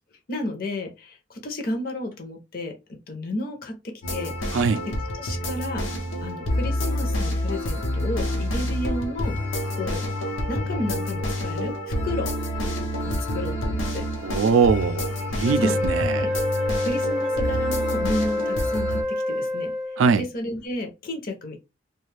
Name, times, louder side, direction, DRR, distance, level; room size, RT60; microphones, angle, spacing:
voice 1, 0.3-2.7 3.1-5.9 6.2-9.4 9.7-10.1 10.5-12.3 13.0-14.1 15.6-16.3 16.8-19.7 20.2-21.6, left 1 dB, 50° left, 0.6 m, -32 dB
sound 1, 4.0-19.0, left 1 dB, 85° left, 0.8 m, -28 dB
voice 2, 14.2-16.3 20.0-20.2, right 5 dB, 85° right, 0.3 m, -22 dB
Wind instrument woodwind instrument, 15.4-20.2, left 1 dB, ahead, 0.3 m, -27 dB
2.5 x 2.3 x 3.2 m
head